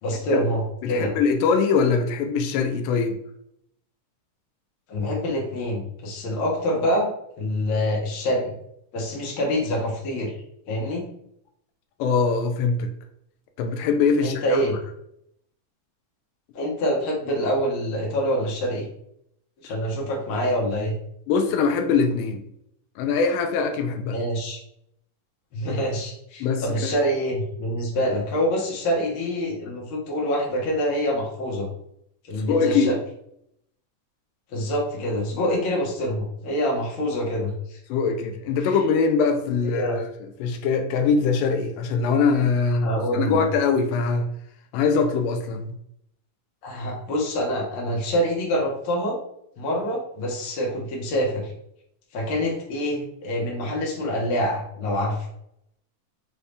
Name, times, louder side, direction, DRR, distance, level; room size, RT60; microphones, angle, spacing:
voice 1, 0.0-1.1 4.9-7.1 7.4-8.5 8.9-10.3 10.7-11.0 14.2-14.8 16.5-18.8 19.6-20.9 24.1-24.6 25.5-31.7 32.3-33.0 34.5-37.8 38.6-38.8 39.7-40.0 42.8-43.5 46.6-49.2 49.6-51.5 52.1-55.3, equal, 55° left, -3 dB, 1.6 m, -26 dB
voice 2, 0.8-3.2 12.0-12.9 13.6-14.7 21.3-22.4 23.0-24.2 26.4-27.0 32.5-33.0 37.9-44.3 44.7-45.7, left 5 dB, 85° left, 6 dB, 2.1 m, -22 dB
5.6 x 2.7 x 3.3 m, 0.74 s
omnidirectional pair, 3.6 m